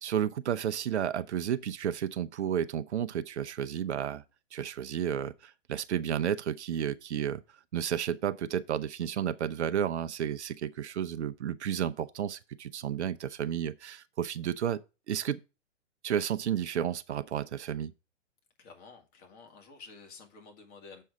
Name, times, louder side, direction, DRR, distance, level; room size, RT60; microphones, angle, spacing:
voice 1, 0.0-4.2 4.5-7.4 7.7-14.8 15.1-15.4 16.0-17.9, right 9 dB, 65° right, 0.7 m, -32 dB
voice 2, 18.6-21.0, left 4 dB, 35° left, 2.1 m, -51 dB
7.5 x 5.5 x 4.6 m
hypercardioid pair, 130°, 37 cm